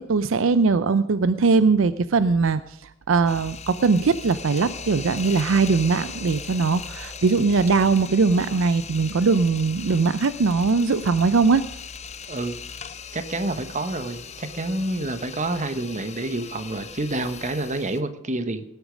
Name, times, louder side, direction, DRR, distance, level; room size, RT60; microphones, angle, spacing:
voice 1, 0.0-11.6, right 4 dB, 70° right, 14 dB, 0.5 m, -20 dB
sound 1, 3.3-18.0, left 6 dB, 35° left, 0.8 m, -39 dB
sound 2, 4.4-16.9, equal, 15° right, 3.9 m, -51 dB
voice 2, 13.1-18.6, right 2 dB, 35° right, 10 dB, 1.2 m, -28 dB
18.5 x 8.3 x 5.2 m, 0.82 s
head